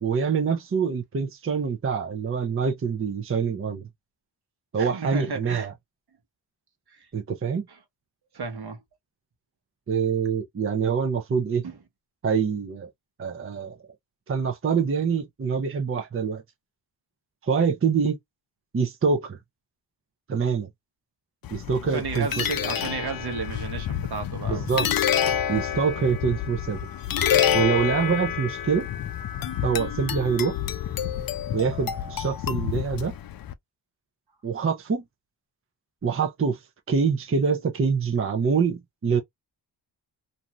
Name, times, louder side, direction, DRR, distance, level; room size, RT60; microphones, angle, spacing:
voice 1, 0.0-3.8 4.7-5.7 7.1-7.7 9.9-11.6 12.2-12.9 13.2-13.8 14.3-16.4 17.4-18.2 18.7-19.4 20.3-20.7 21.5-22.4 24.5-24.9 25.5-26.8 27.5-28.9 29.6-30.6 31.5-33.1 34.4-35.0 36.0-36.6 36.9-39.2, right 6 dB, 30° right, 0.6 m, -25 dB
voice 2, 4.8-5.7 6.9-7.1 7.7-7.8 8.3-8.8 11.6-11.8 21.9-24.8, right 4 dB, 60° right, 1.1 m, -33 dB
sound 1, 21.4-33.5, left 9 dB, 55° left, 0.5 m, -28 dB
2.6 x 2.3 x 3.0 m
cardioid pair, 60°, 44 cm